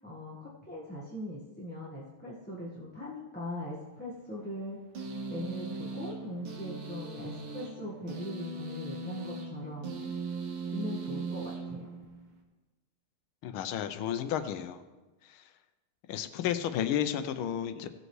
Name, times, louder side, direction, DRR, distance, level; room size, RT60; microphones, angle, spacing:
voice 1, 0.0-4.8 5.3-10.0 10.7-11.9, equal, 5° left, -7 dB, 1.1 m, -40 dB
sound 1, 4.9-12.4, right 3 dB, 80° right, 2.2 m, -39 dB
voice 2, 13.4-14.8 15.3-15.4 16.1-17.9, left 9 dB, 85° left, 10 dB, 1.5 m, -32 dB
17.0 x 7.9 x 3.2 m, 1.2 s
omnidirectional pair, 2.3 m